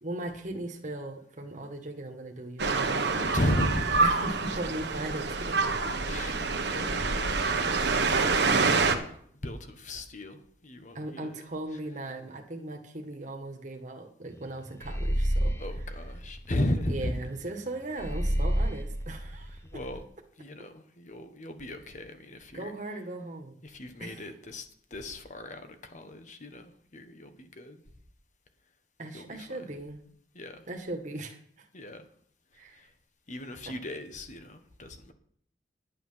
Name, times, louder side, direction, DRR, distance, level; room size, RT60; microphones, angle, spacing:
voice 1, 0.0-3.4 4.0-5.9 10.9-15.5 16.9-19.6 22.5-23.5 24.0-24.3 29.0-30.0 30.7-31.6 32.5-32.8, right 2 dB, 45° right, 3 dB, 1.6 m, -38 dB
sound 1, 2.6-9.0, right 4 dB, 70° right, 1.3 m, -26 dB
voice 2, 3.3-4.0 6.0-11.4 15.6-17.2 19.6-20.0 20.4-22.7 23.6-27.8 29.1-29.7 30.3-30.7 31.7-32.1 32.5-32.9 33.3-35.1, left 1 dB, 45° left, 8 dB, 1.3 m, -36 dB
sound 2, 14.8-17.0 18.0-20.0, equal, 15° left, 0.9 m, -30 dB
11.0 x 9.0 x 5.7 m, 0.63 s
head